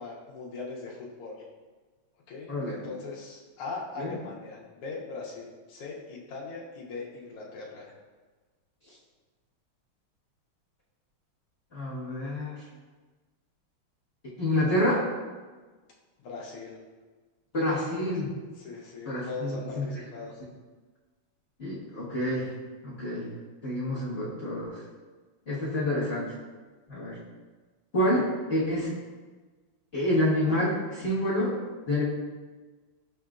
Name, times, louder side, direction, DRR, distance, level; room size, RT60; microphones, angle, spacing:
voice 1, 0.0-1.4 2.3-7.9 16.2-16.8 17.6-18.3 18.6-20.3, left 3 dB, 80° left, -4 dB, 1.7 m, -40 dB
voice 2, 2.5-2.8 4.0-4.1 11.7-12.6 14.4-15.1 17.5-18.3 19.0-19.9 21.6-22.5 22.8-23.3 23.6-24.8 25.5-26.3 26.9-27.2 27.9-29.0 29.9-31.6 31.9-32.0, left 1 dB, 30° left, -11 dB, 1.4 m, -28 dB
7.6 x 2.9 x 2.4 m, 1.3 s
omnidirectional pair, 2.4 m